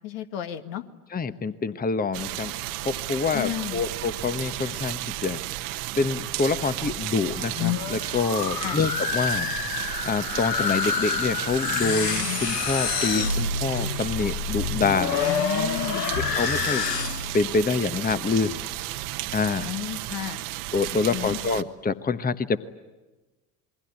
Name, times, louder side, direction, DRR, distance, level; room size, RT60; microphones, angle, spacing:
voice 1, 0.0-0.8 3.3-3.8 8.5-8.8 15.3-16.2 19.6-20.4 21.0-21.4, left 13 dB, 60° left, 7 dB, 1.9 m, -33 dB
voice 2, 1.1-2.5 2.8-5.4 6.0-9.5 10.0-15.2 15.9-16.9 17.3-18.6 19.3-19.7 20.7-22.6, left 4 dB, 20° left, 12 dB, 1.2 m, -26 dB
sound 1, 2.1-21.6, right 16 dB, 60° right, 1.4 m, -33 dB
sound 2, 7.4-17.4, left 6 dB, 85° left, 1.2 m, -28 dB
28.0 x 22.5 x 9.5 m, 1.2 s
figure-of-eight pair, 60°, 47 cm